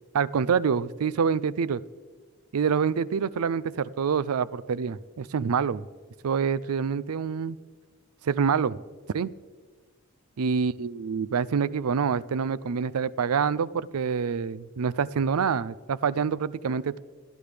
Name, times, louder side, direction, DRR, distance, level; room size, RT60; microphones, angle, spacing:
voice 1, 0.1-1.8 2.5-5.9 6.2-7.6 8.2-8.8 9.1-9.3 10.4-17.0, right 6 dB, 85° right, 18 dB, 0.4 m, -26 dB
27.0 x 11.5 x 3.4 m, 1.5 s
head